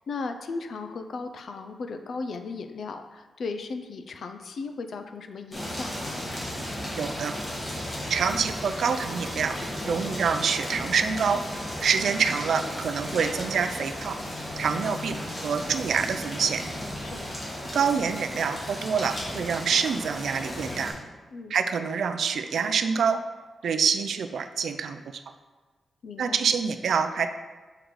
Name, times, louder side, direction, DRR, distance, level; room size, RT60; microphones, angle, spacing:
voice 1, 0.1-6.2 17.0-17.4 21.3-21.6 26.0-26.4, left 4 dB, 60° left, 7 dB, 0.5 m, -36 dB
sound 1, 5.5-20.9, equal, 20° left, 1.7 m, -35 dB
voice 2, 7.0-7.3 8.1-9.6 9.9-11.4 11.8-14.2 14.6-15.2 15.4-16.6 17.7-20.9 21.5-23.2 23.6-25.0 26.2-27.3, right 6 dB, 70° right, 9 dB, 0.3 m, -26 dB
sound 2, 11.6-18.8, left 2 dB, 30° right, 1.1 m, -48 dB
6.4 x 3.8 x 4.7 m, 1.3 s
wide cardioid pair, 155°, 0 cm